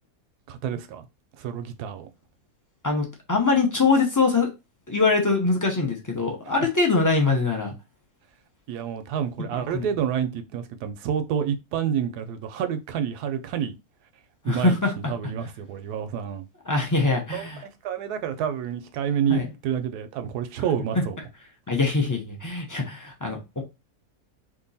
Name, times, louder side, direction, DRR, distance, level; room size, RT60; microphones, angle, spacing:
voice 1, 0.5-1.1 1.4-2.1 6.5-6.6 8.7-13.8 14.4-14.8 15.1-16.4 17.3-21.2, right 8 dB, 85° right, 1.1 m, -29 dB
voice 2, 2.8-4.5 4.9-7.7 9.7-9.9 14.5-14.9 16.7-17.6 19.3-19.5 20.9-21.0 21.7-23.6, left 3 dB, 30° left, 0.3 m, -23 dB
2.9 x 2.5 x 3.9 m
omnidirectional pair, 1.6 m